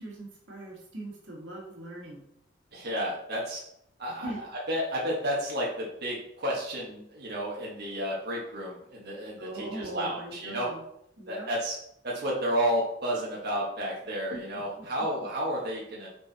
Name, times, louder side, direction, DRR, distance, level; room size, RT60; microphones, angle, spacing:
voice 1, 0.0-2.2 4.1-4.4 9.4-10.8 11.2-11.5 14.3-14.9, right 1 dB, 90° right, -3 dB, 2.0 m, -40 dB
voice 2, 2.7-3.6 4.0-4.3 4.7-10.7 11.3-11.8 12.0-16.1, equal, 60° right, -4 dB, 1.5 m, -31 dB
6.5 x 4.3 x 4.2 m, 0.75 s
head